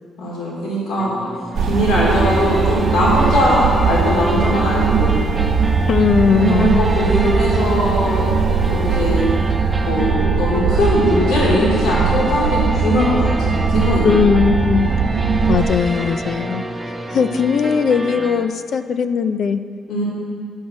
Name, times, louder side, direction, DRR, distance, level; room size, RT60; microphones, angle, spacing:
voice 1, 0.2-1.1 1.6-5.1 6.3-8.3 8.7-9.3 9.8-14.1 19.9-20.0, left 1 dB, 80° left, -5 dB, 3.0 m, -20 dB
sound 1, 1.0-18.5, right 1 dB, 15° right, 0.8 m, -29 dB
sound 2, 1.5-15.6, right 5 dB, 65° right, 0.8 m, -19 dB
voice 2, 5.9-6.8 14.0-14.9 15.5-16.6 17.1-19.6, left 6 dB, 60° left, 11 dB, 0.5 m, -18 dB
11.5 x 6.1 x 6.3 m, 2.2 s
cardioid pair, 90°, 0 cm